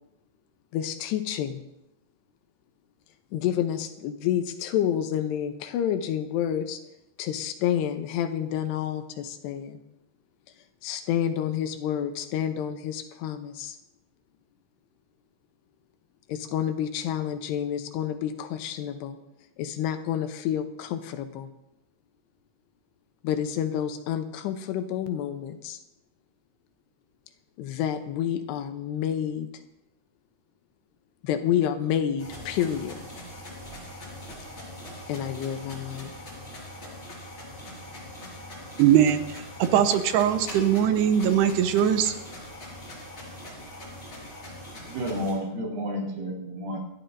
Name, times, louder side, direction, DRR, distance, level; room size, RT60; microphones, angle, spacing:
voice 1, 0.7-1.6 3.3-6.8 7.2-9.8 10.8-13.8 16.3-19.2 19.6-21.5 23.2-25.8 27.6-29.5 31.2-33.0 35.1-36.1, left 10 dB, 80° left, 2.9 m, -29 dB
sound 1, 32.2-45.3, left 1 dB, 30° left, 6.0 m, -42 dB
voice 2, 38.8-42.1, right 9 dB, 80° right, 2.8 m, -21 dB
voice 3, 44.9-46.8, equal, 60° right, 4.0 m, -31 dB
28.5 x 12.0 x 2.6 m
omnidirectional pair, 4.8 m